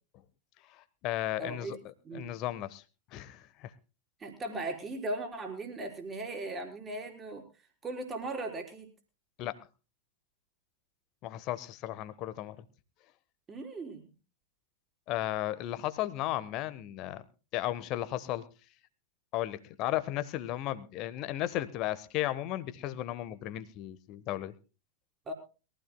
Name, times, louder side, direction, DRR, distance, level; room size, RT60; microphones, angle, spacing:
voice 1, 0.7-1.8 2.1-2.8 3.1-3.7 9.4-9.6 11.2-12.6 15.1-17.2 17.5-18.4 19.3-24.5, left 14 dB, 40° left, 14 dB, 1.2 m, -35 dB
voice 2, 1.4-1.8 2.0-2.3 4.2-7.4 7.8-8.9 13.5-14.1 25.3-25.4, right 2 dB, 20° right, 3 dB, 4.1 m, -38 dB
22.5 x 15.0 x 2.2 m, 0.33 s
figure-of-eight pair, 90°, 0 cm